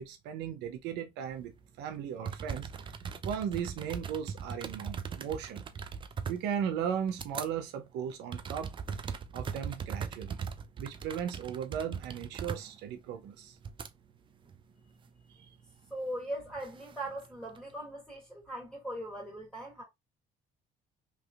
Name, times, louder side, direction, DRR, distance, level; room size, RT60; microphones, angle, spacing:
voice 1, 0.0-1.5 1.8-2.7 3.2-5.6 6.3-8.7 9.3-10.4 10.8-13.6 15.3-15.5, right 8 dB, 90° right, 0.6 m, -36 dB
sound 1, 1.9-2.0 2.2-7.5 7.9-13.9 14.4-15.0 16.2-17.7, right 6 dB, 30° right, 0.4 m, -40 dB
voice 2, 15.9-19.8, right 1 dB, ahead, 1.9 m, -40 dB
3.4 x 2.8 x 2.3 m
cardioid pair, 110°, 17 cm